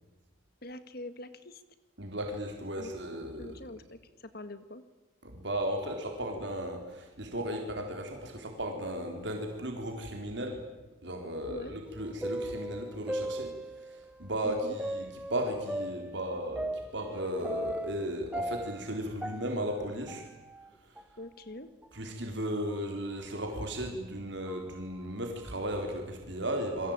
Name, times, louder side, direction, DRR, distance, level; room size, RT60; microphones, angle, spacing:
voice 1, 0.6-1.6 2.8-2.9 3.4-4.8 11.4-11.8 14.4-14.8 21.2-21.7, left 1 dB, 50° left, 12 dB, 1.9 m, -44 dB
voice 2, 2.0-3.6 5.2-10.6 11.0-20.2 20.9-21.0 21.9-26.9, right 1 dB, 55° right, 2 dB, 4.1 m, -35 dB
sound 1, 11.9-14.0 14.8-18.0 18.3-20.7 21.0-21.1 21.8-21.9 22.7-22.9 23.5-23.6 24.5-24.8, right 1 dB, 5° right, 1.0 m, -38 dB
29.0 x 22.5 x 9.0 m, 1.2 s
head